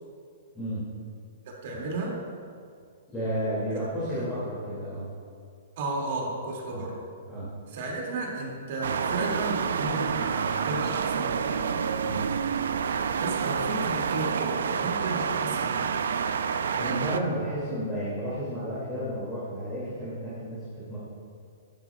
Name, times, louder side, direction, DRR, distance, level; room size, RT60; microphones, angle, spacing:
voice 1, 0.5-0.9 1.7-1.8 3.1-5.1 6.7-6.9 7.3-7.5 12.0-12.3 16.7-21.0, equal, 5° left, -12 dB, 2.4 m, -32 dB
voice 2, 1.6-2.2 4.1-4.2 5.8-6.9 7.7-11.6 12.9-15.9, right 2 dB, 45° right, -2 dB, 2.3 m, -33 dB
sound 1, 8.8-17.2, right 6 dB, 80° right, 0.5 m, -28 dB
12.5 x 11.5 x 2.4 m, 2.3 s
hypercardioid pair, 170°, 0 cm